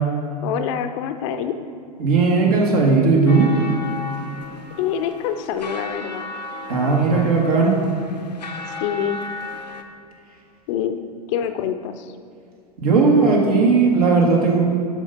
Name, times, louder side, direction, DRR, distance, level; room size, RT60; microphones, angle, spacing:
voice 1, 0.4-1.5 4.8-6.3 8.8-9.2 10.7-11.0 11.3-12.1, left 9 dB, 45° left, 9 dB, 0.6 m, -25 dB
voice 2, 2.0-3.5 6.7-7.7 12.8-14.6, right 4 dB, 65° right, -2 dB, 1.7 m, -16 dB
sound 1, 3.3-9.8, left 3 dB, 85° left, 0.7 m, -34 dB
8.1 x 5.5 x 5.7 m, 2.4 s
figure-of-eight pair, 90°, 21 cm